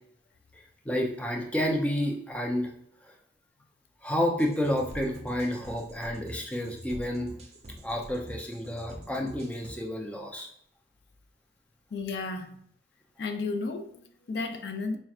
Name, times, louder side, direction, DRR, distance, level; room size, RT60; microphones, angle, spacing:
voice 1, 0.5-2.7 3.0-3.1 4.0-7.3 7.8-10.5, left 1 dB, 10° left, 0.5 m, -30 dB
sound 1, 4.4-9.7, right 1 dB, 35° right, 0.6 m, -45 dB
voice 2, 11.9-12.6 13.2-15.0, left 3 dB, 65° left, 0.4 m, -33 dB
4.3 x 3.0 x 2.4 m
head